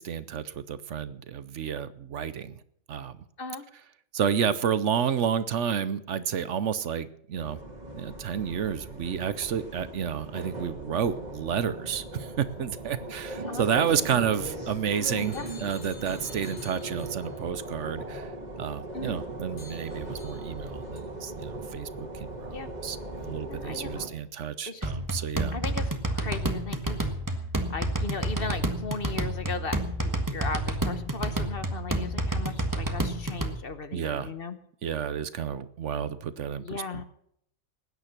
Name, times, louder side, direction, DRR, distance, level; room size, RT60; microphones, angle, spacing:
voice 1, 0.0-2.6 2.9-3.2 4.1-7.6 7.9-18.3 18.6-25.6 33.9-34.3 34.8-37.0, right 8 dB, 65° right, 15 dB, 1.0 m, -30 dB
sound 1, 7.3-24.1, right 2 dB, 30° right, 2.3 m, -39 dB
sound 2, 15.2-17.3 19.6-20.6 21.0-21.1, left 4 dB, 85° left, 3.5 m, -50 dB
voice 2, 23.4-24.1 24.7-24.9 25.5-27.0 27.7-34.6 36.6-37.0, left 4 dB, 45° left, 11 dB, 1.2 m, -37 dB
sound 3, 24.8-33.6, right 1 dB, 15° right, 1.3 m, -30 dB
19.5 x 9.6 x 6.0 m, 0.67 s
omnidirectional pair, 1.4 m